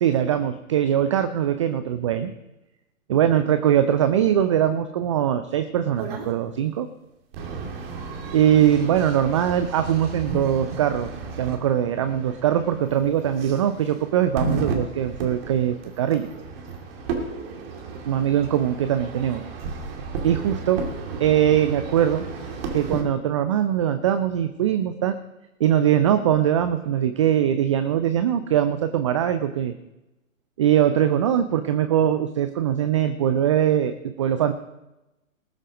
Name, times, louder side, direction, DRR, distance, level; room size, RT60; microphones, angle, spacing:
voice 1, 0.0-2.3 3.1-6.9 8.3-11.1 11.4-16.3 18.1-19.4 20.2-20.8 21.2-22.2 22.7-25.2 25.6-29.7 30.6-34.5, right 10 dB, 25° right, 10 dB, 0.4 m, -21 dB
sound 1, 6.0-6.3 7.3-23.0, right 4 dB, 45° right, 2.6 m, -34 dB
19.0 x 7.4 x 5.1 m, 0.98 s
figure-of-eight pair, 125°, 41 cm